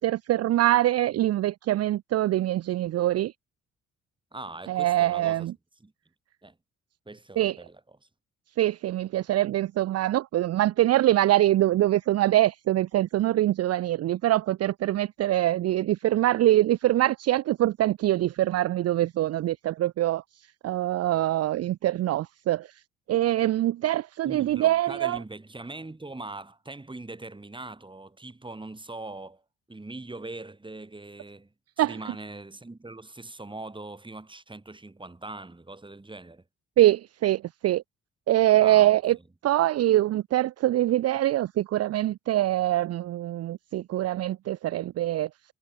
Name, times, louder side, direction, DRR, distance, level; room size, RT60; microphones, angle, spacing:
voice 1, 0.0-3.3 4.7-5.5 7.4-7.6 8.6-20.2 20.6-22.7 23.1-25.2 31.8-32.0 36.8-37.8 38.3-39.2 39.4-45.3, right 14 dB, 55° right, 0.5 m, -24 dB
voice 2, 4.3-5.5 5.8-5.9 6.4-6.6 7.1-7.8 24.3-29.4 29.7-36.4 38.6-38.9, right 2 dB, 15° right, 7.4 m, -41 dB
cardioid pair, 90°, 30 cm